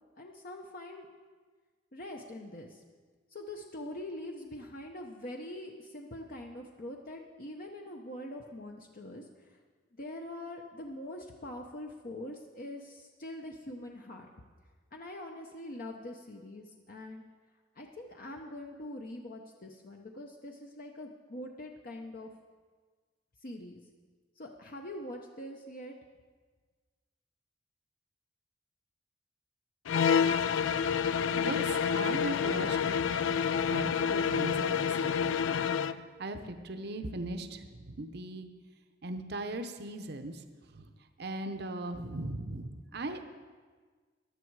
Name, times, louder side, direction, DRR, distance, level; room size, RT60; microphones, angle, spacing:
voice 1, 0.2-1.1 1.9-2.8 3.3-9.6 10.0-14.3 14.9-17.2 17.7-22.3 23.4-23.8 24.4-25.9, left 1 dB, 50° left, 2 dB, 0.8 m, -43 dB
sound 1, 29.9-36.0, left 7 dB, 90° left, 0.4 m, -28 dB
voice 2, 31.3-33.3 33.7-38.5 39.0-40.4 40.7-40.8 41.2-43.3, right 2 dB, 60° right, 7 dB, 0.8 m, -39 dB
15.0 x 11.0 x 4.7 m, 1.5 s
head